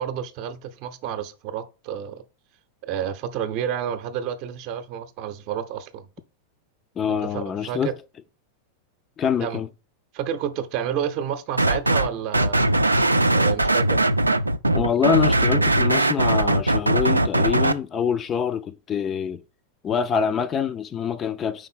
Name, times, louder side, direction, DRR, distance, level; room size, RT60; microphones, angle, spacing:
voice 1, 0.0-2.2 2.8-6.1 7.3-7.9 9.4-9.6 10.1-12.6 13.3-14.1, right 9 dB, 45° right, 0.7 m, -30 dB
voice 2, 7.0-8.0 9.2-9.7 14.7-19.4 19.8-21.7, left 7 dB, 25° left, 0.4 m, -25 dB
sound 1, 11.6-12.1 12.3-17.7, right 1 dB, 85° right, 0.3 m, -20 dB
5.1 x 3.8 x 5.6 m
figure-of-eight pair, 90°, 0 cm